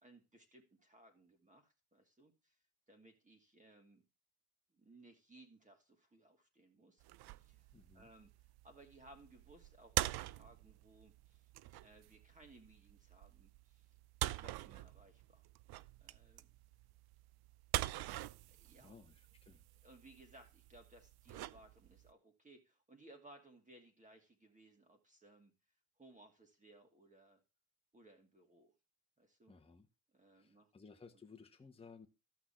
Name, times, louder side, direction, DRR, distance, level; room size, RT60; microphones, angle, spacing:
voice 1, 0.0-2.6 2.9-4.0 4.7-7.0 7.4-7.7 7.9-8.3 8.6-11.5 11.8-14.0 14.2-15.5 16.0-16.5 18.5-19.0 19.8-25.5 26.0-27.4 27.9-28.7 29.2-29.5 30.1-30.7, right 2 dB, 15° right, 2.6 m, -62 dB
sound 1, 7.0-22.1, right 17 dB, 55° right, 0.5 m, -44 dB
voice 2, 7.7-8.1 18.8-19.6 29.5-29.9 30.3-32.1, left 4 dB, 10° left, 1.4 m, -58 dB
13.5 x 6.0 x 4.3 m
supercardioid pair, 100°, 47 cm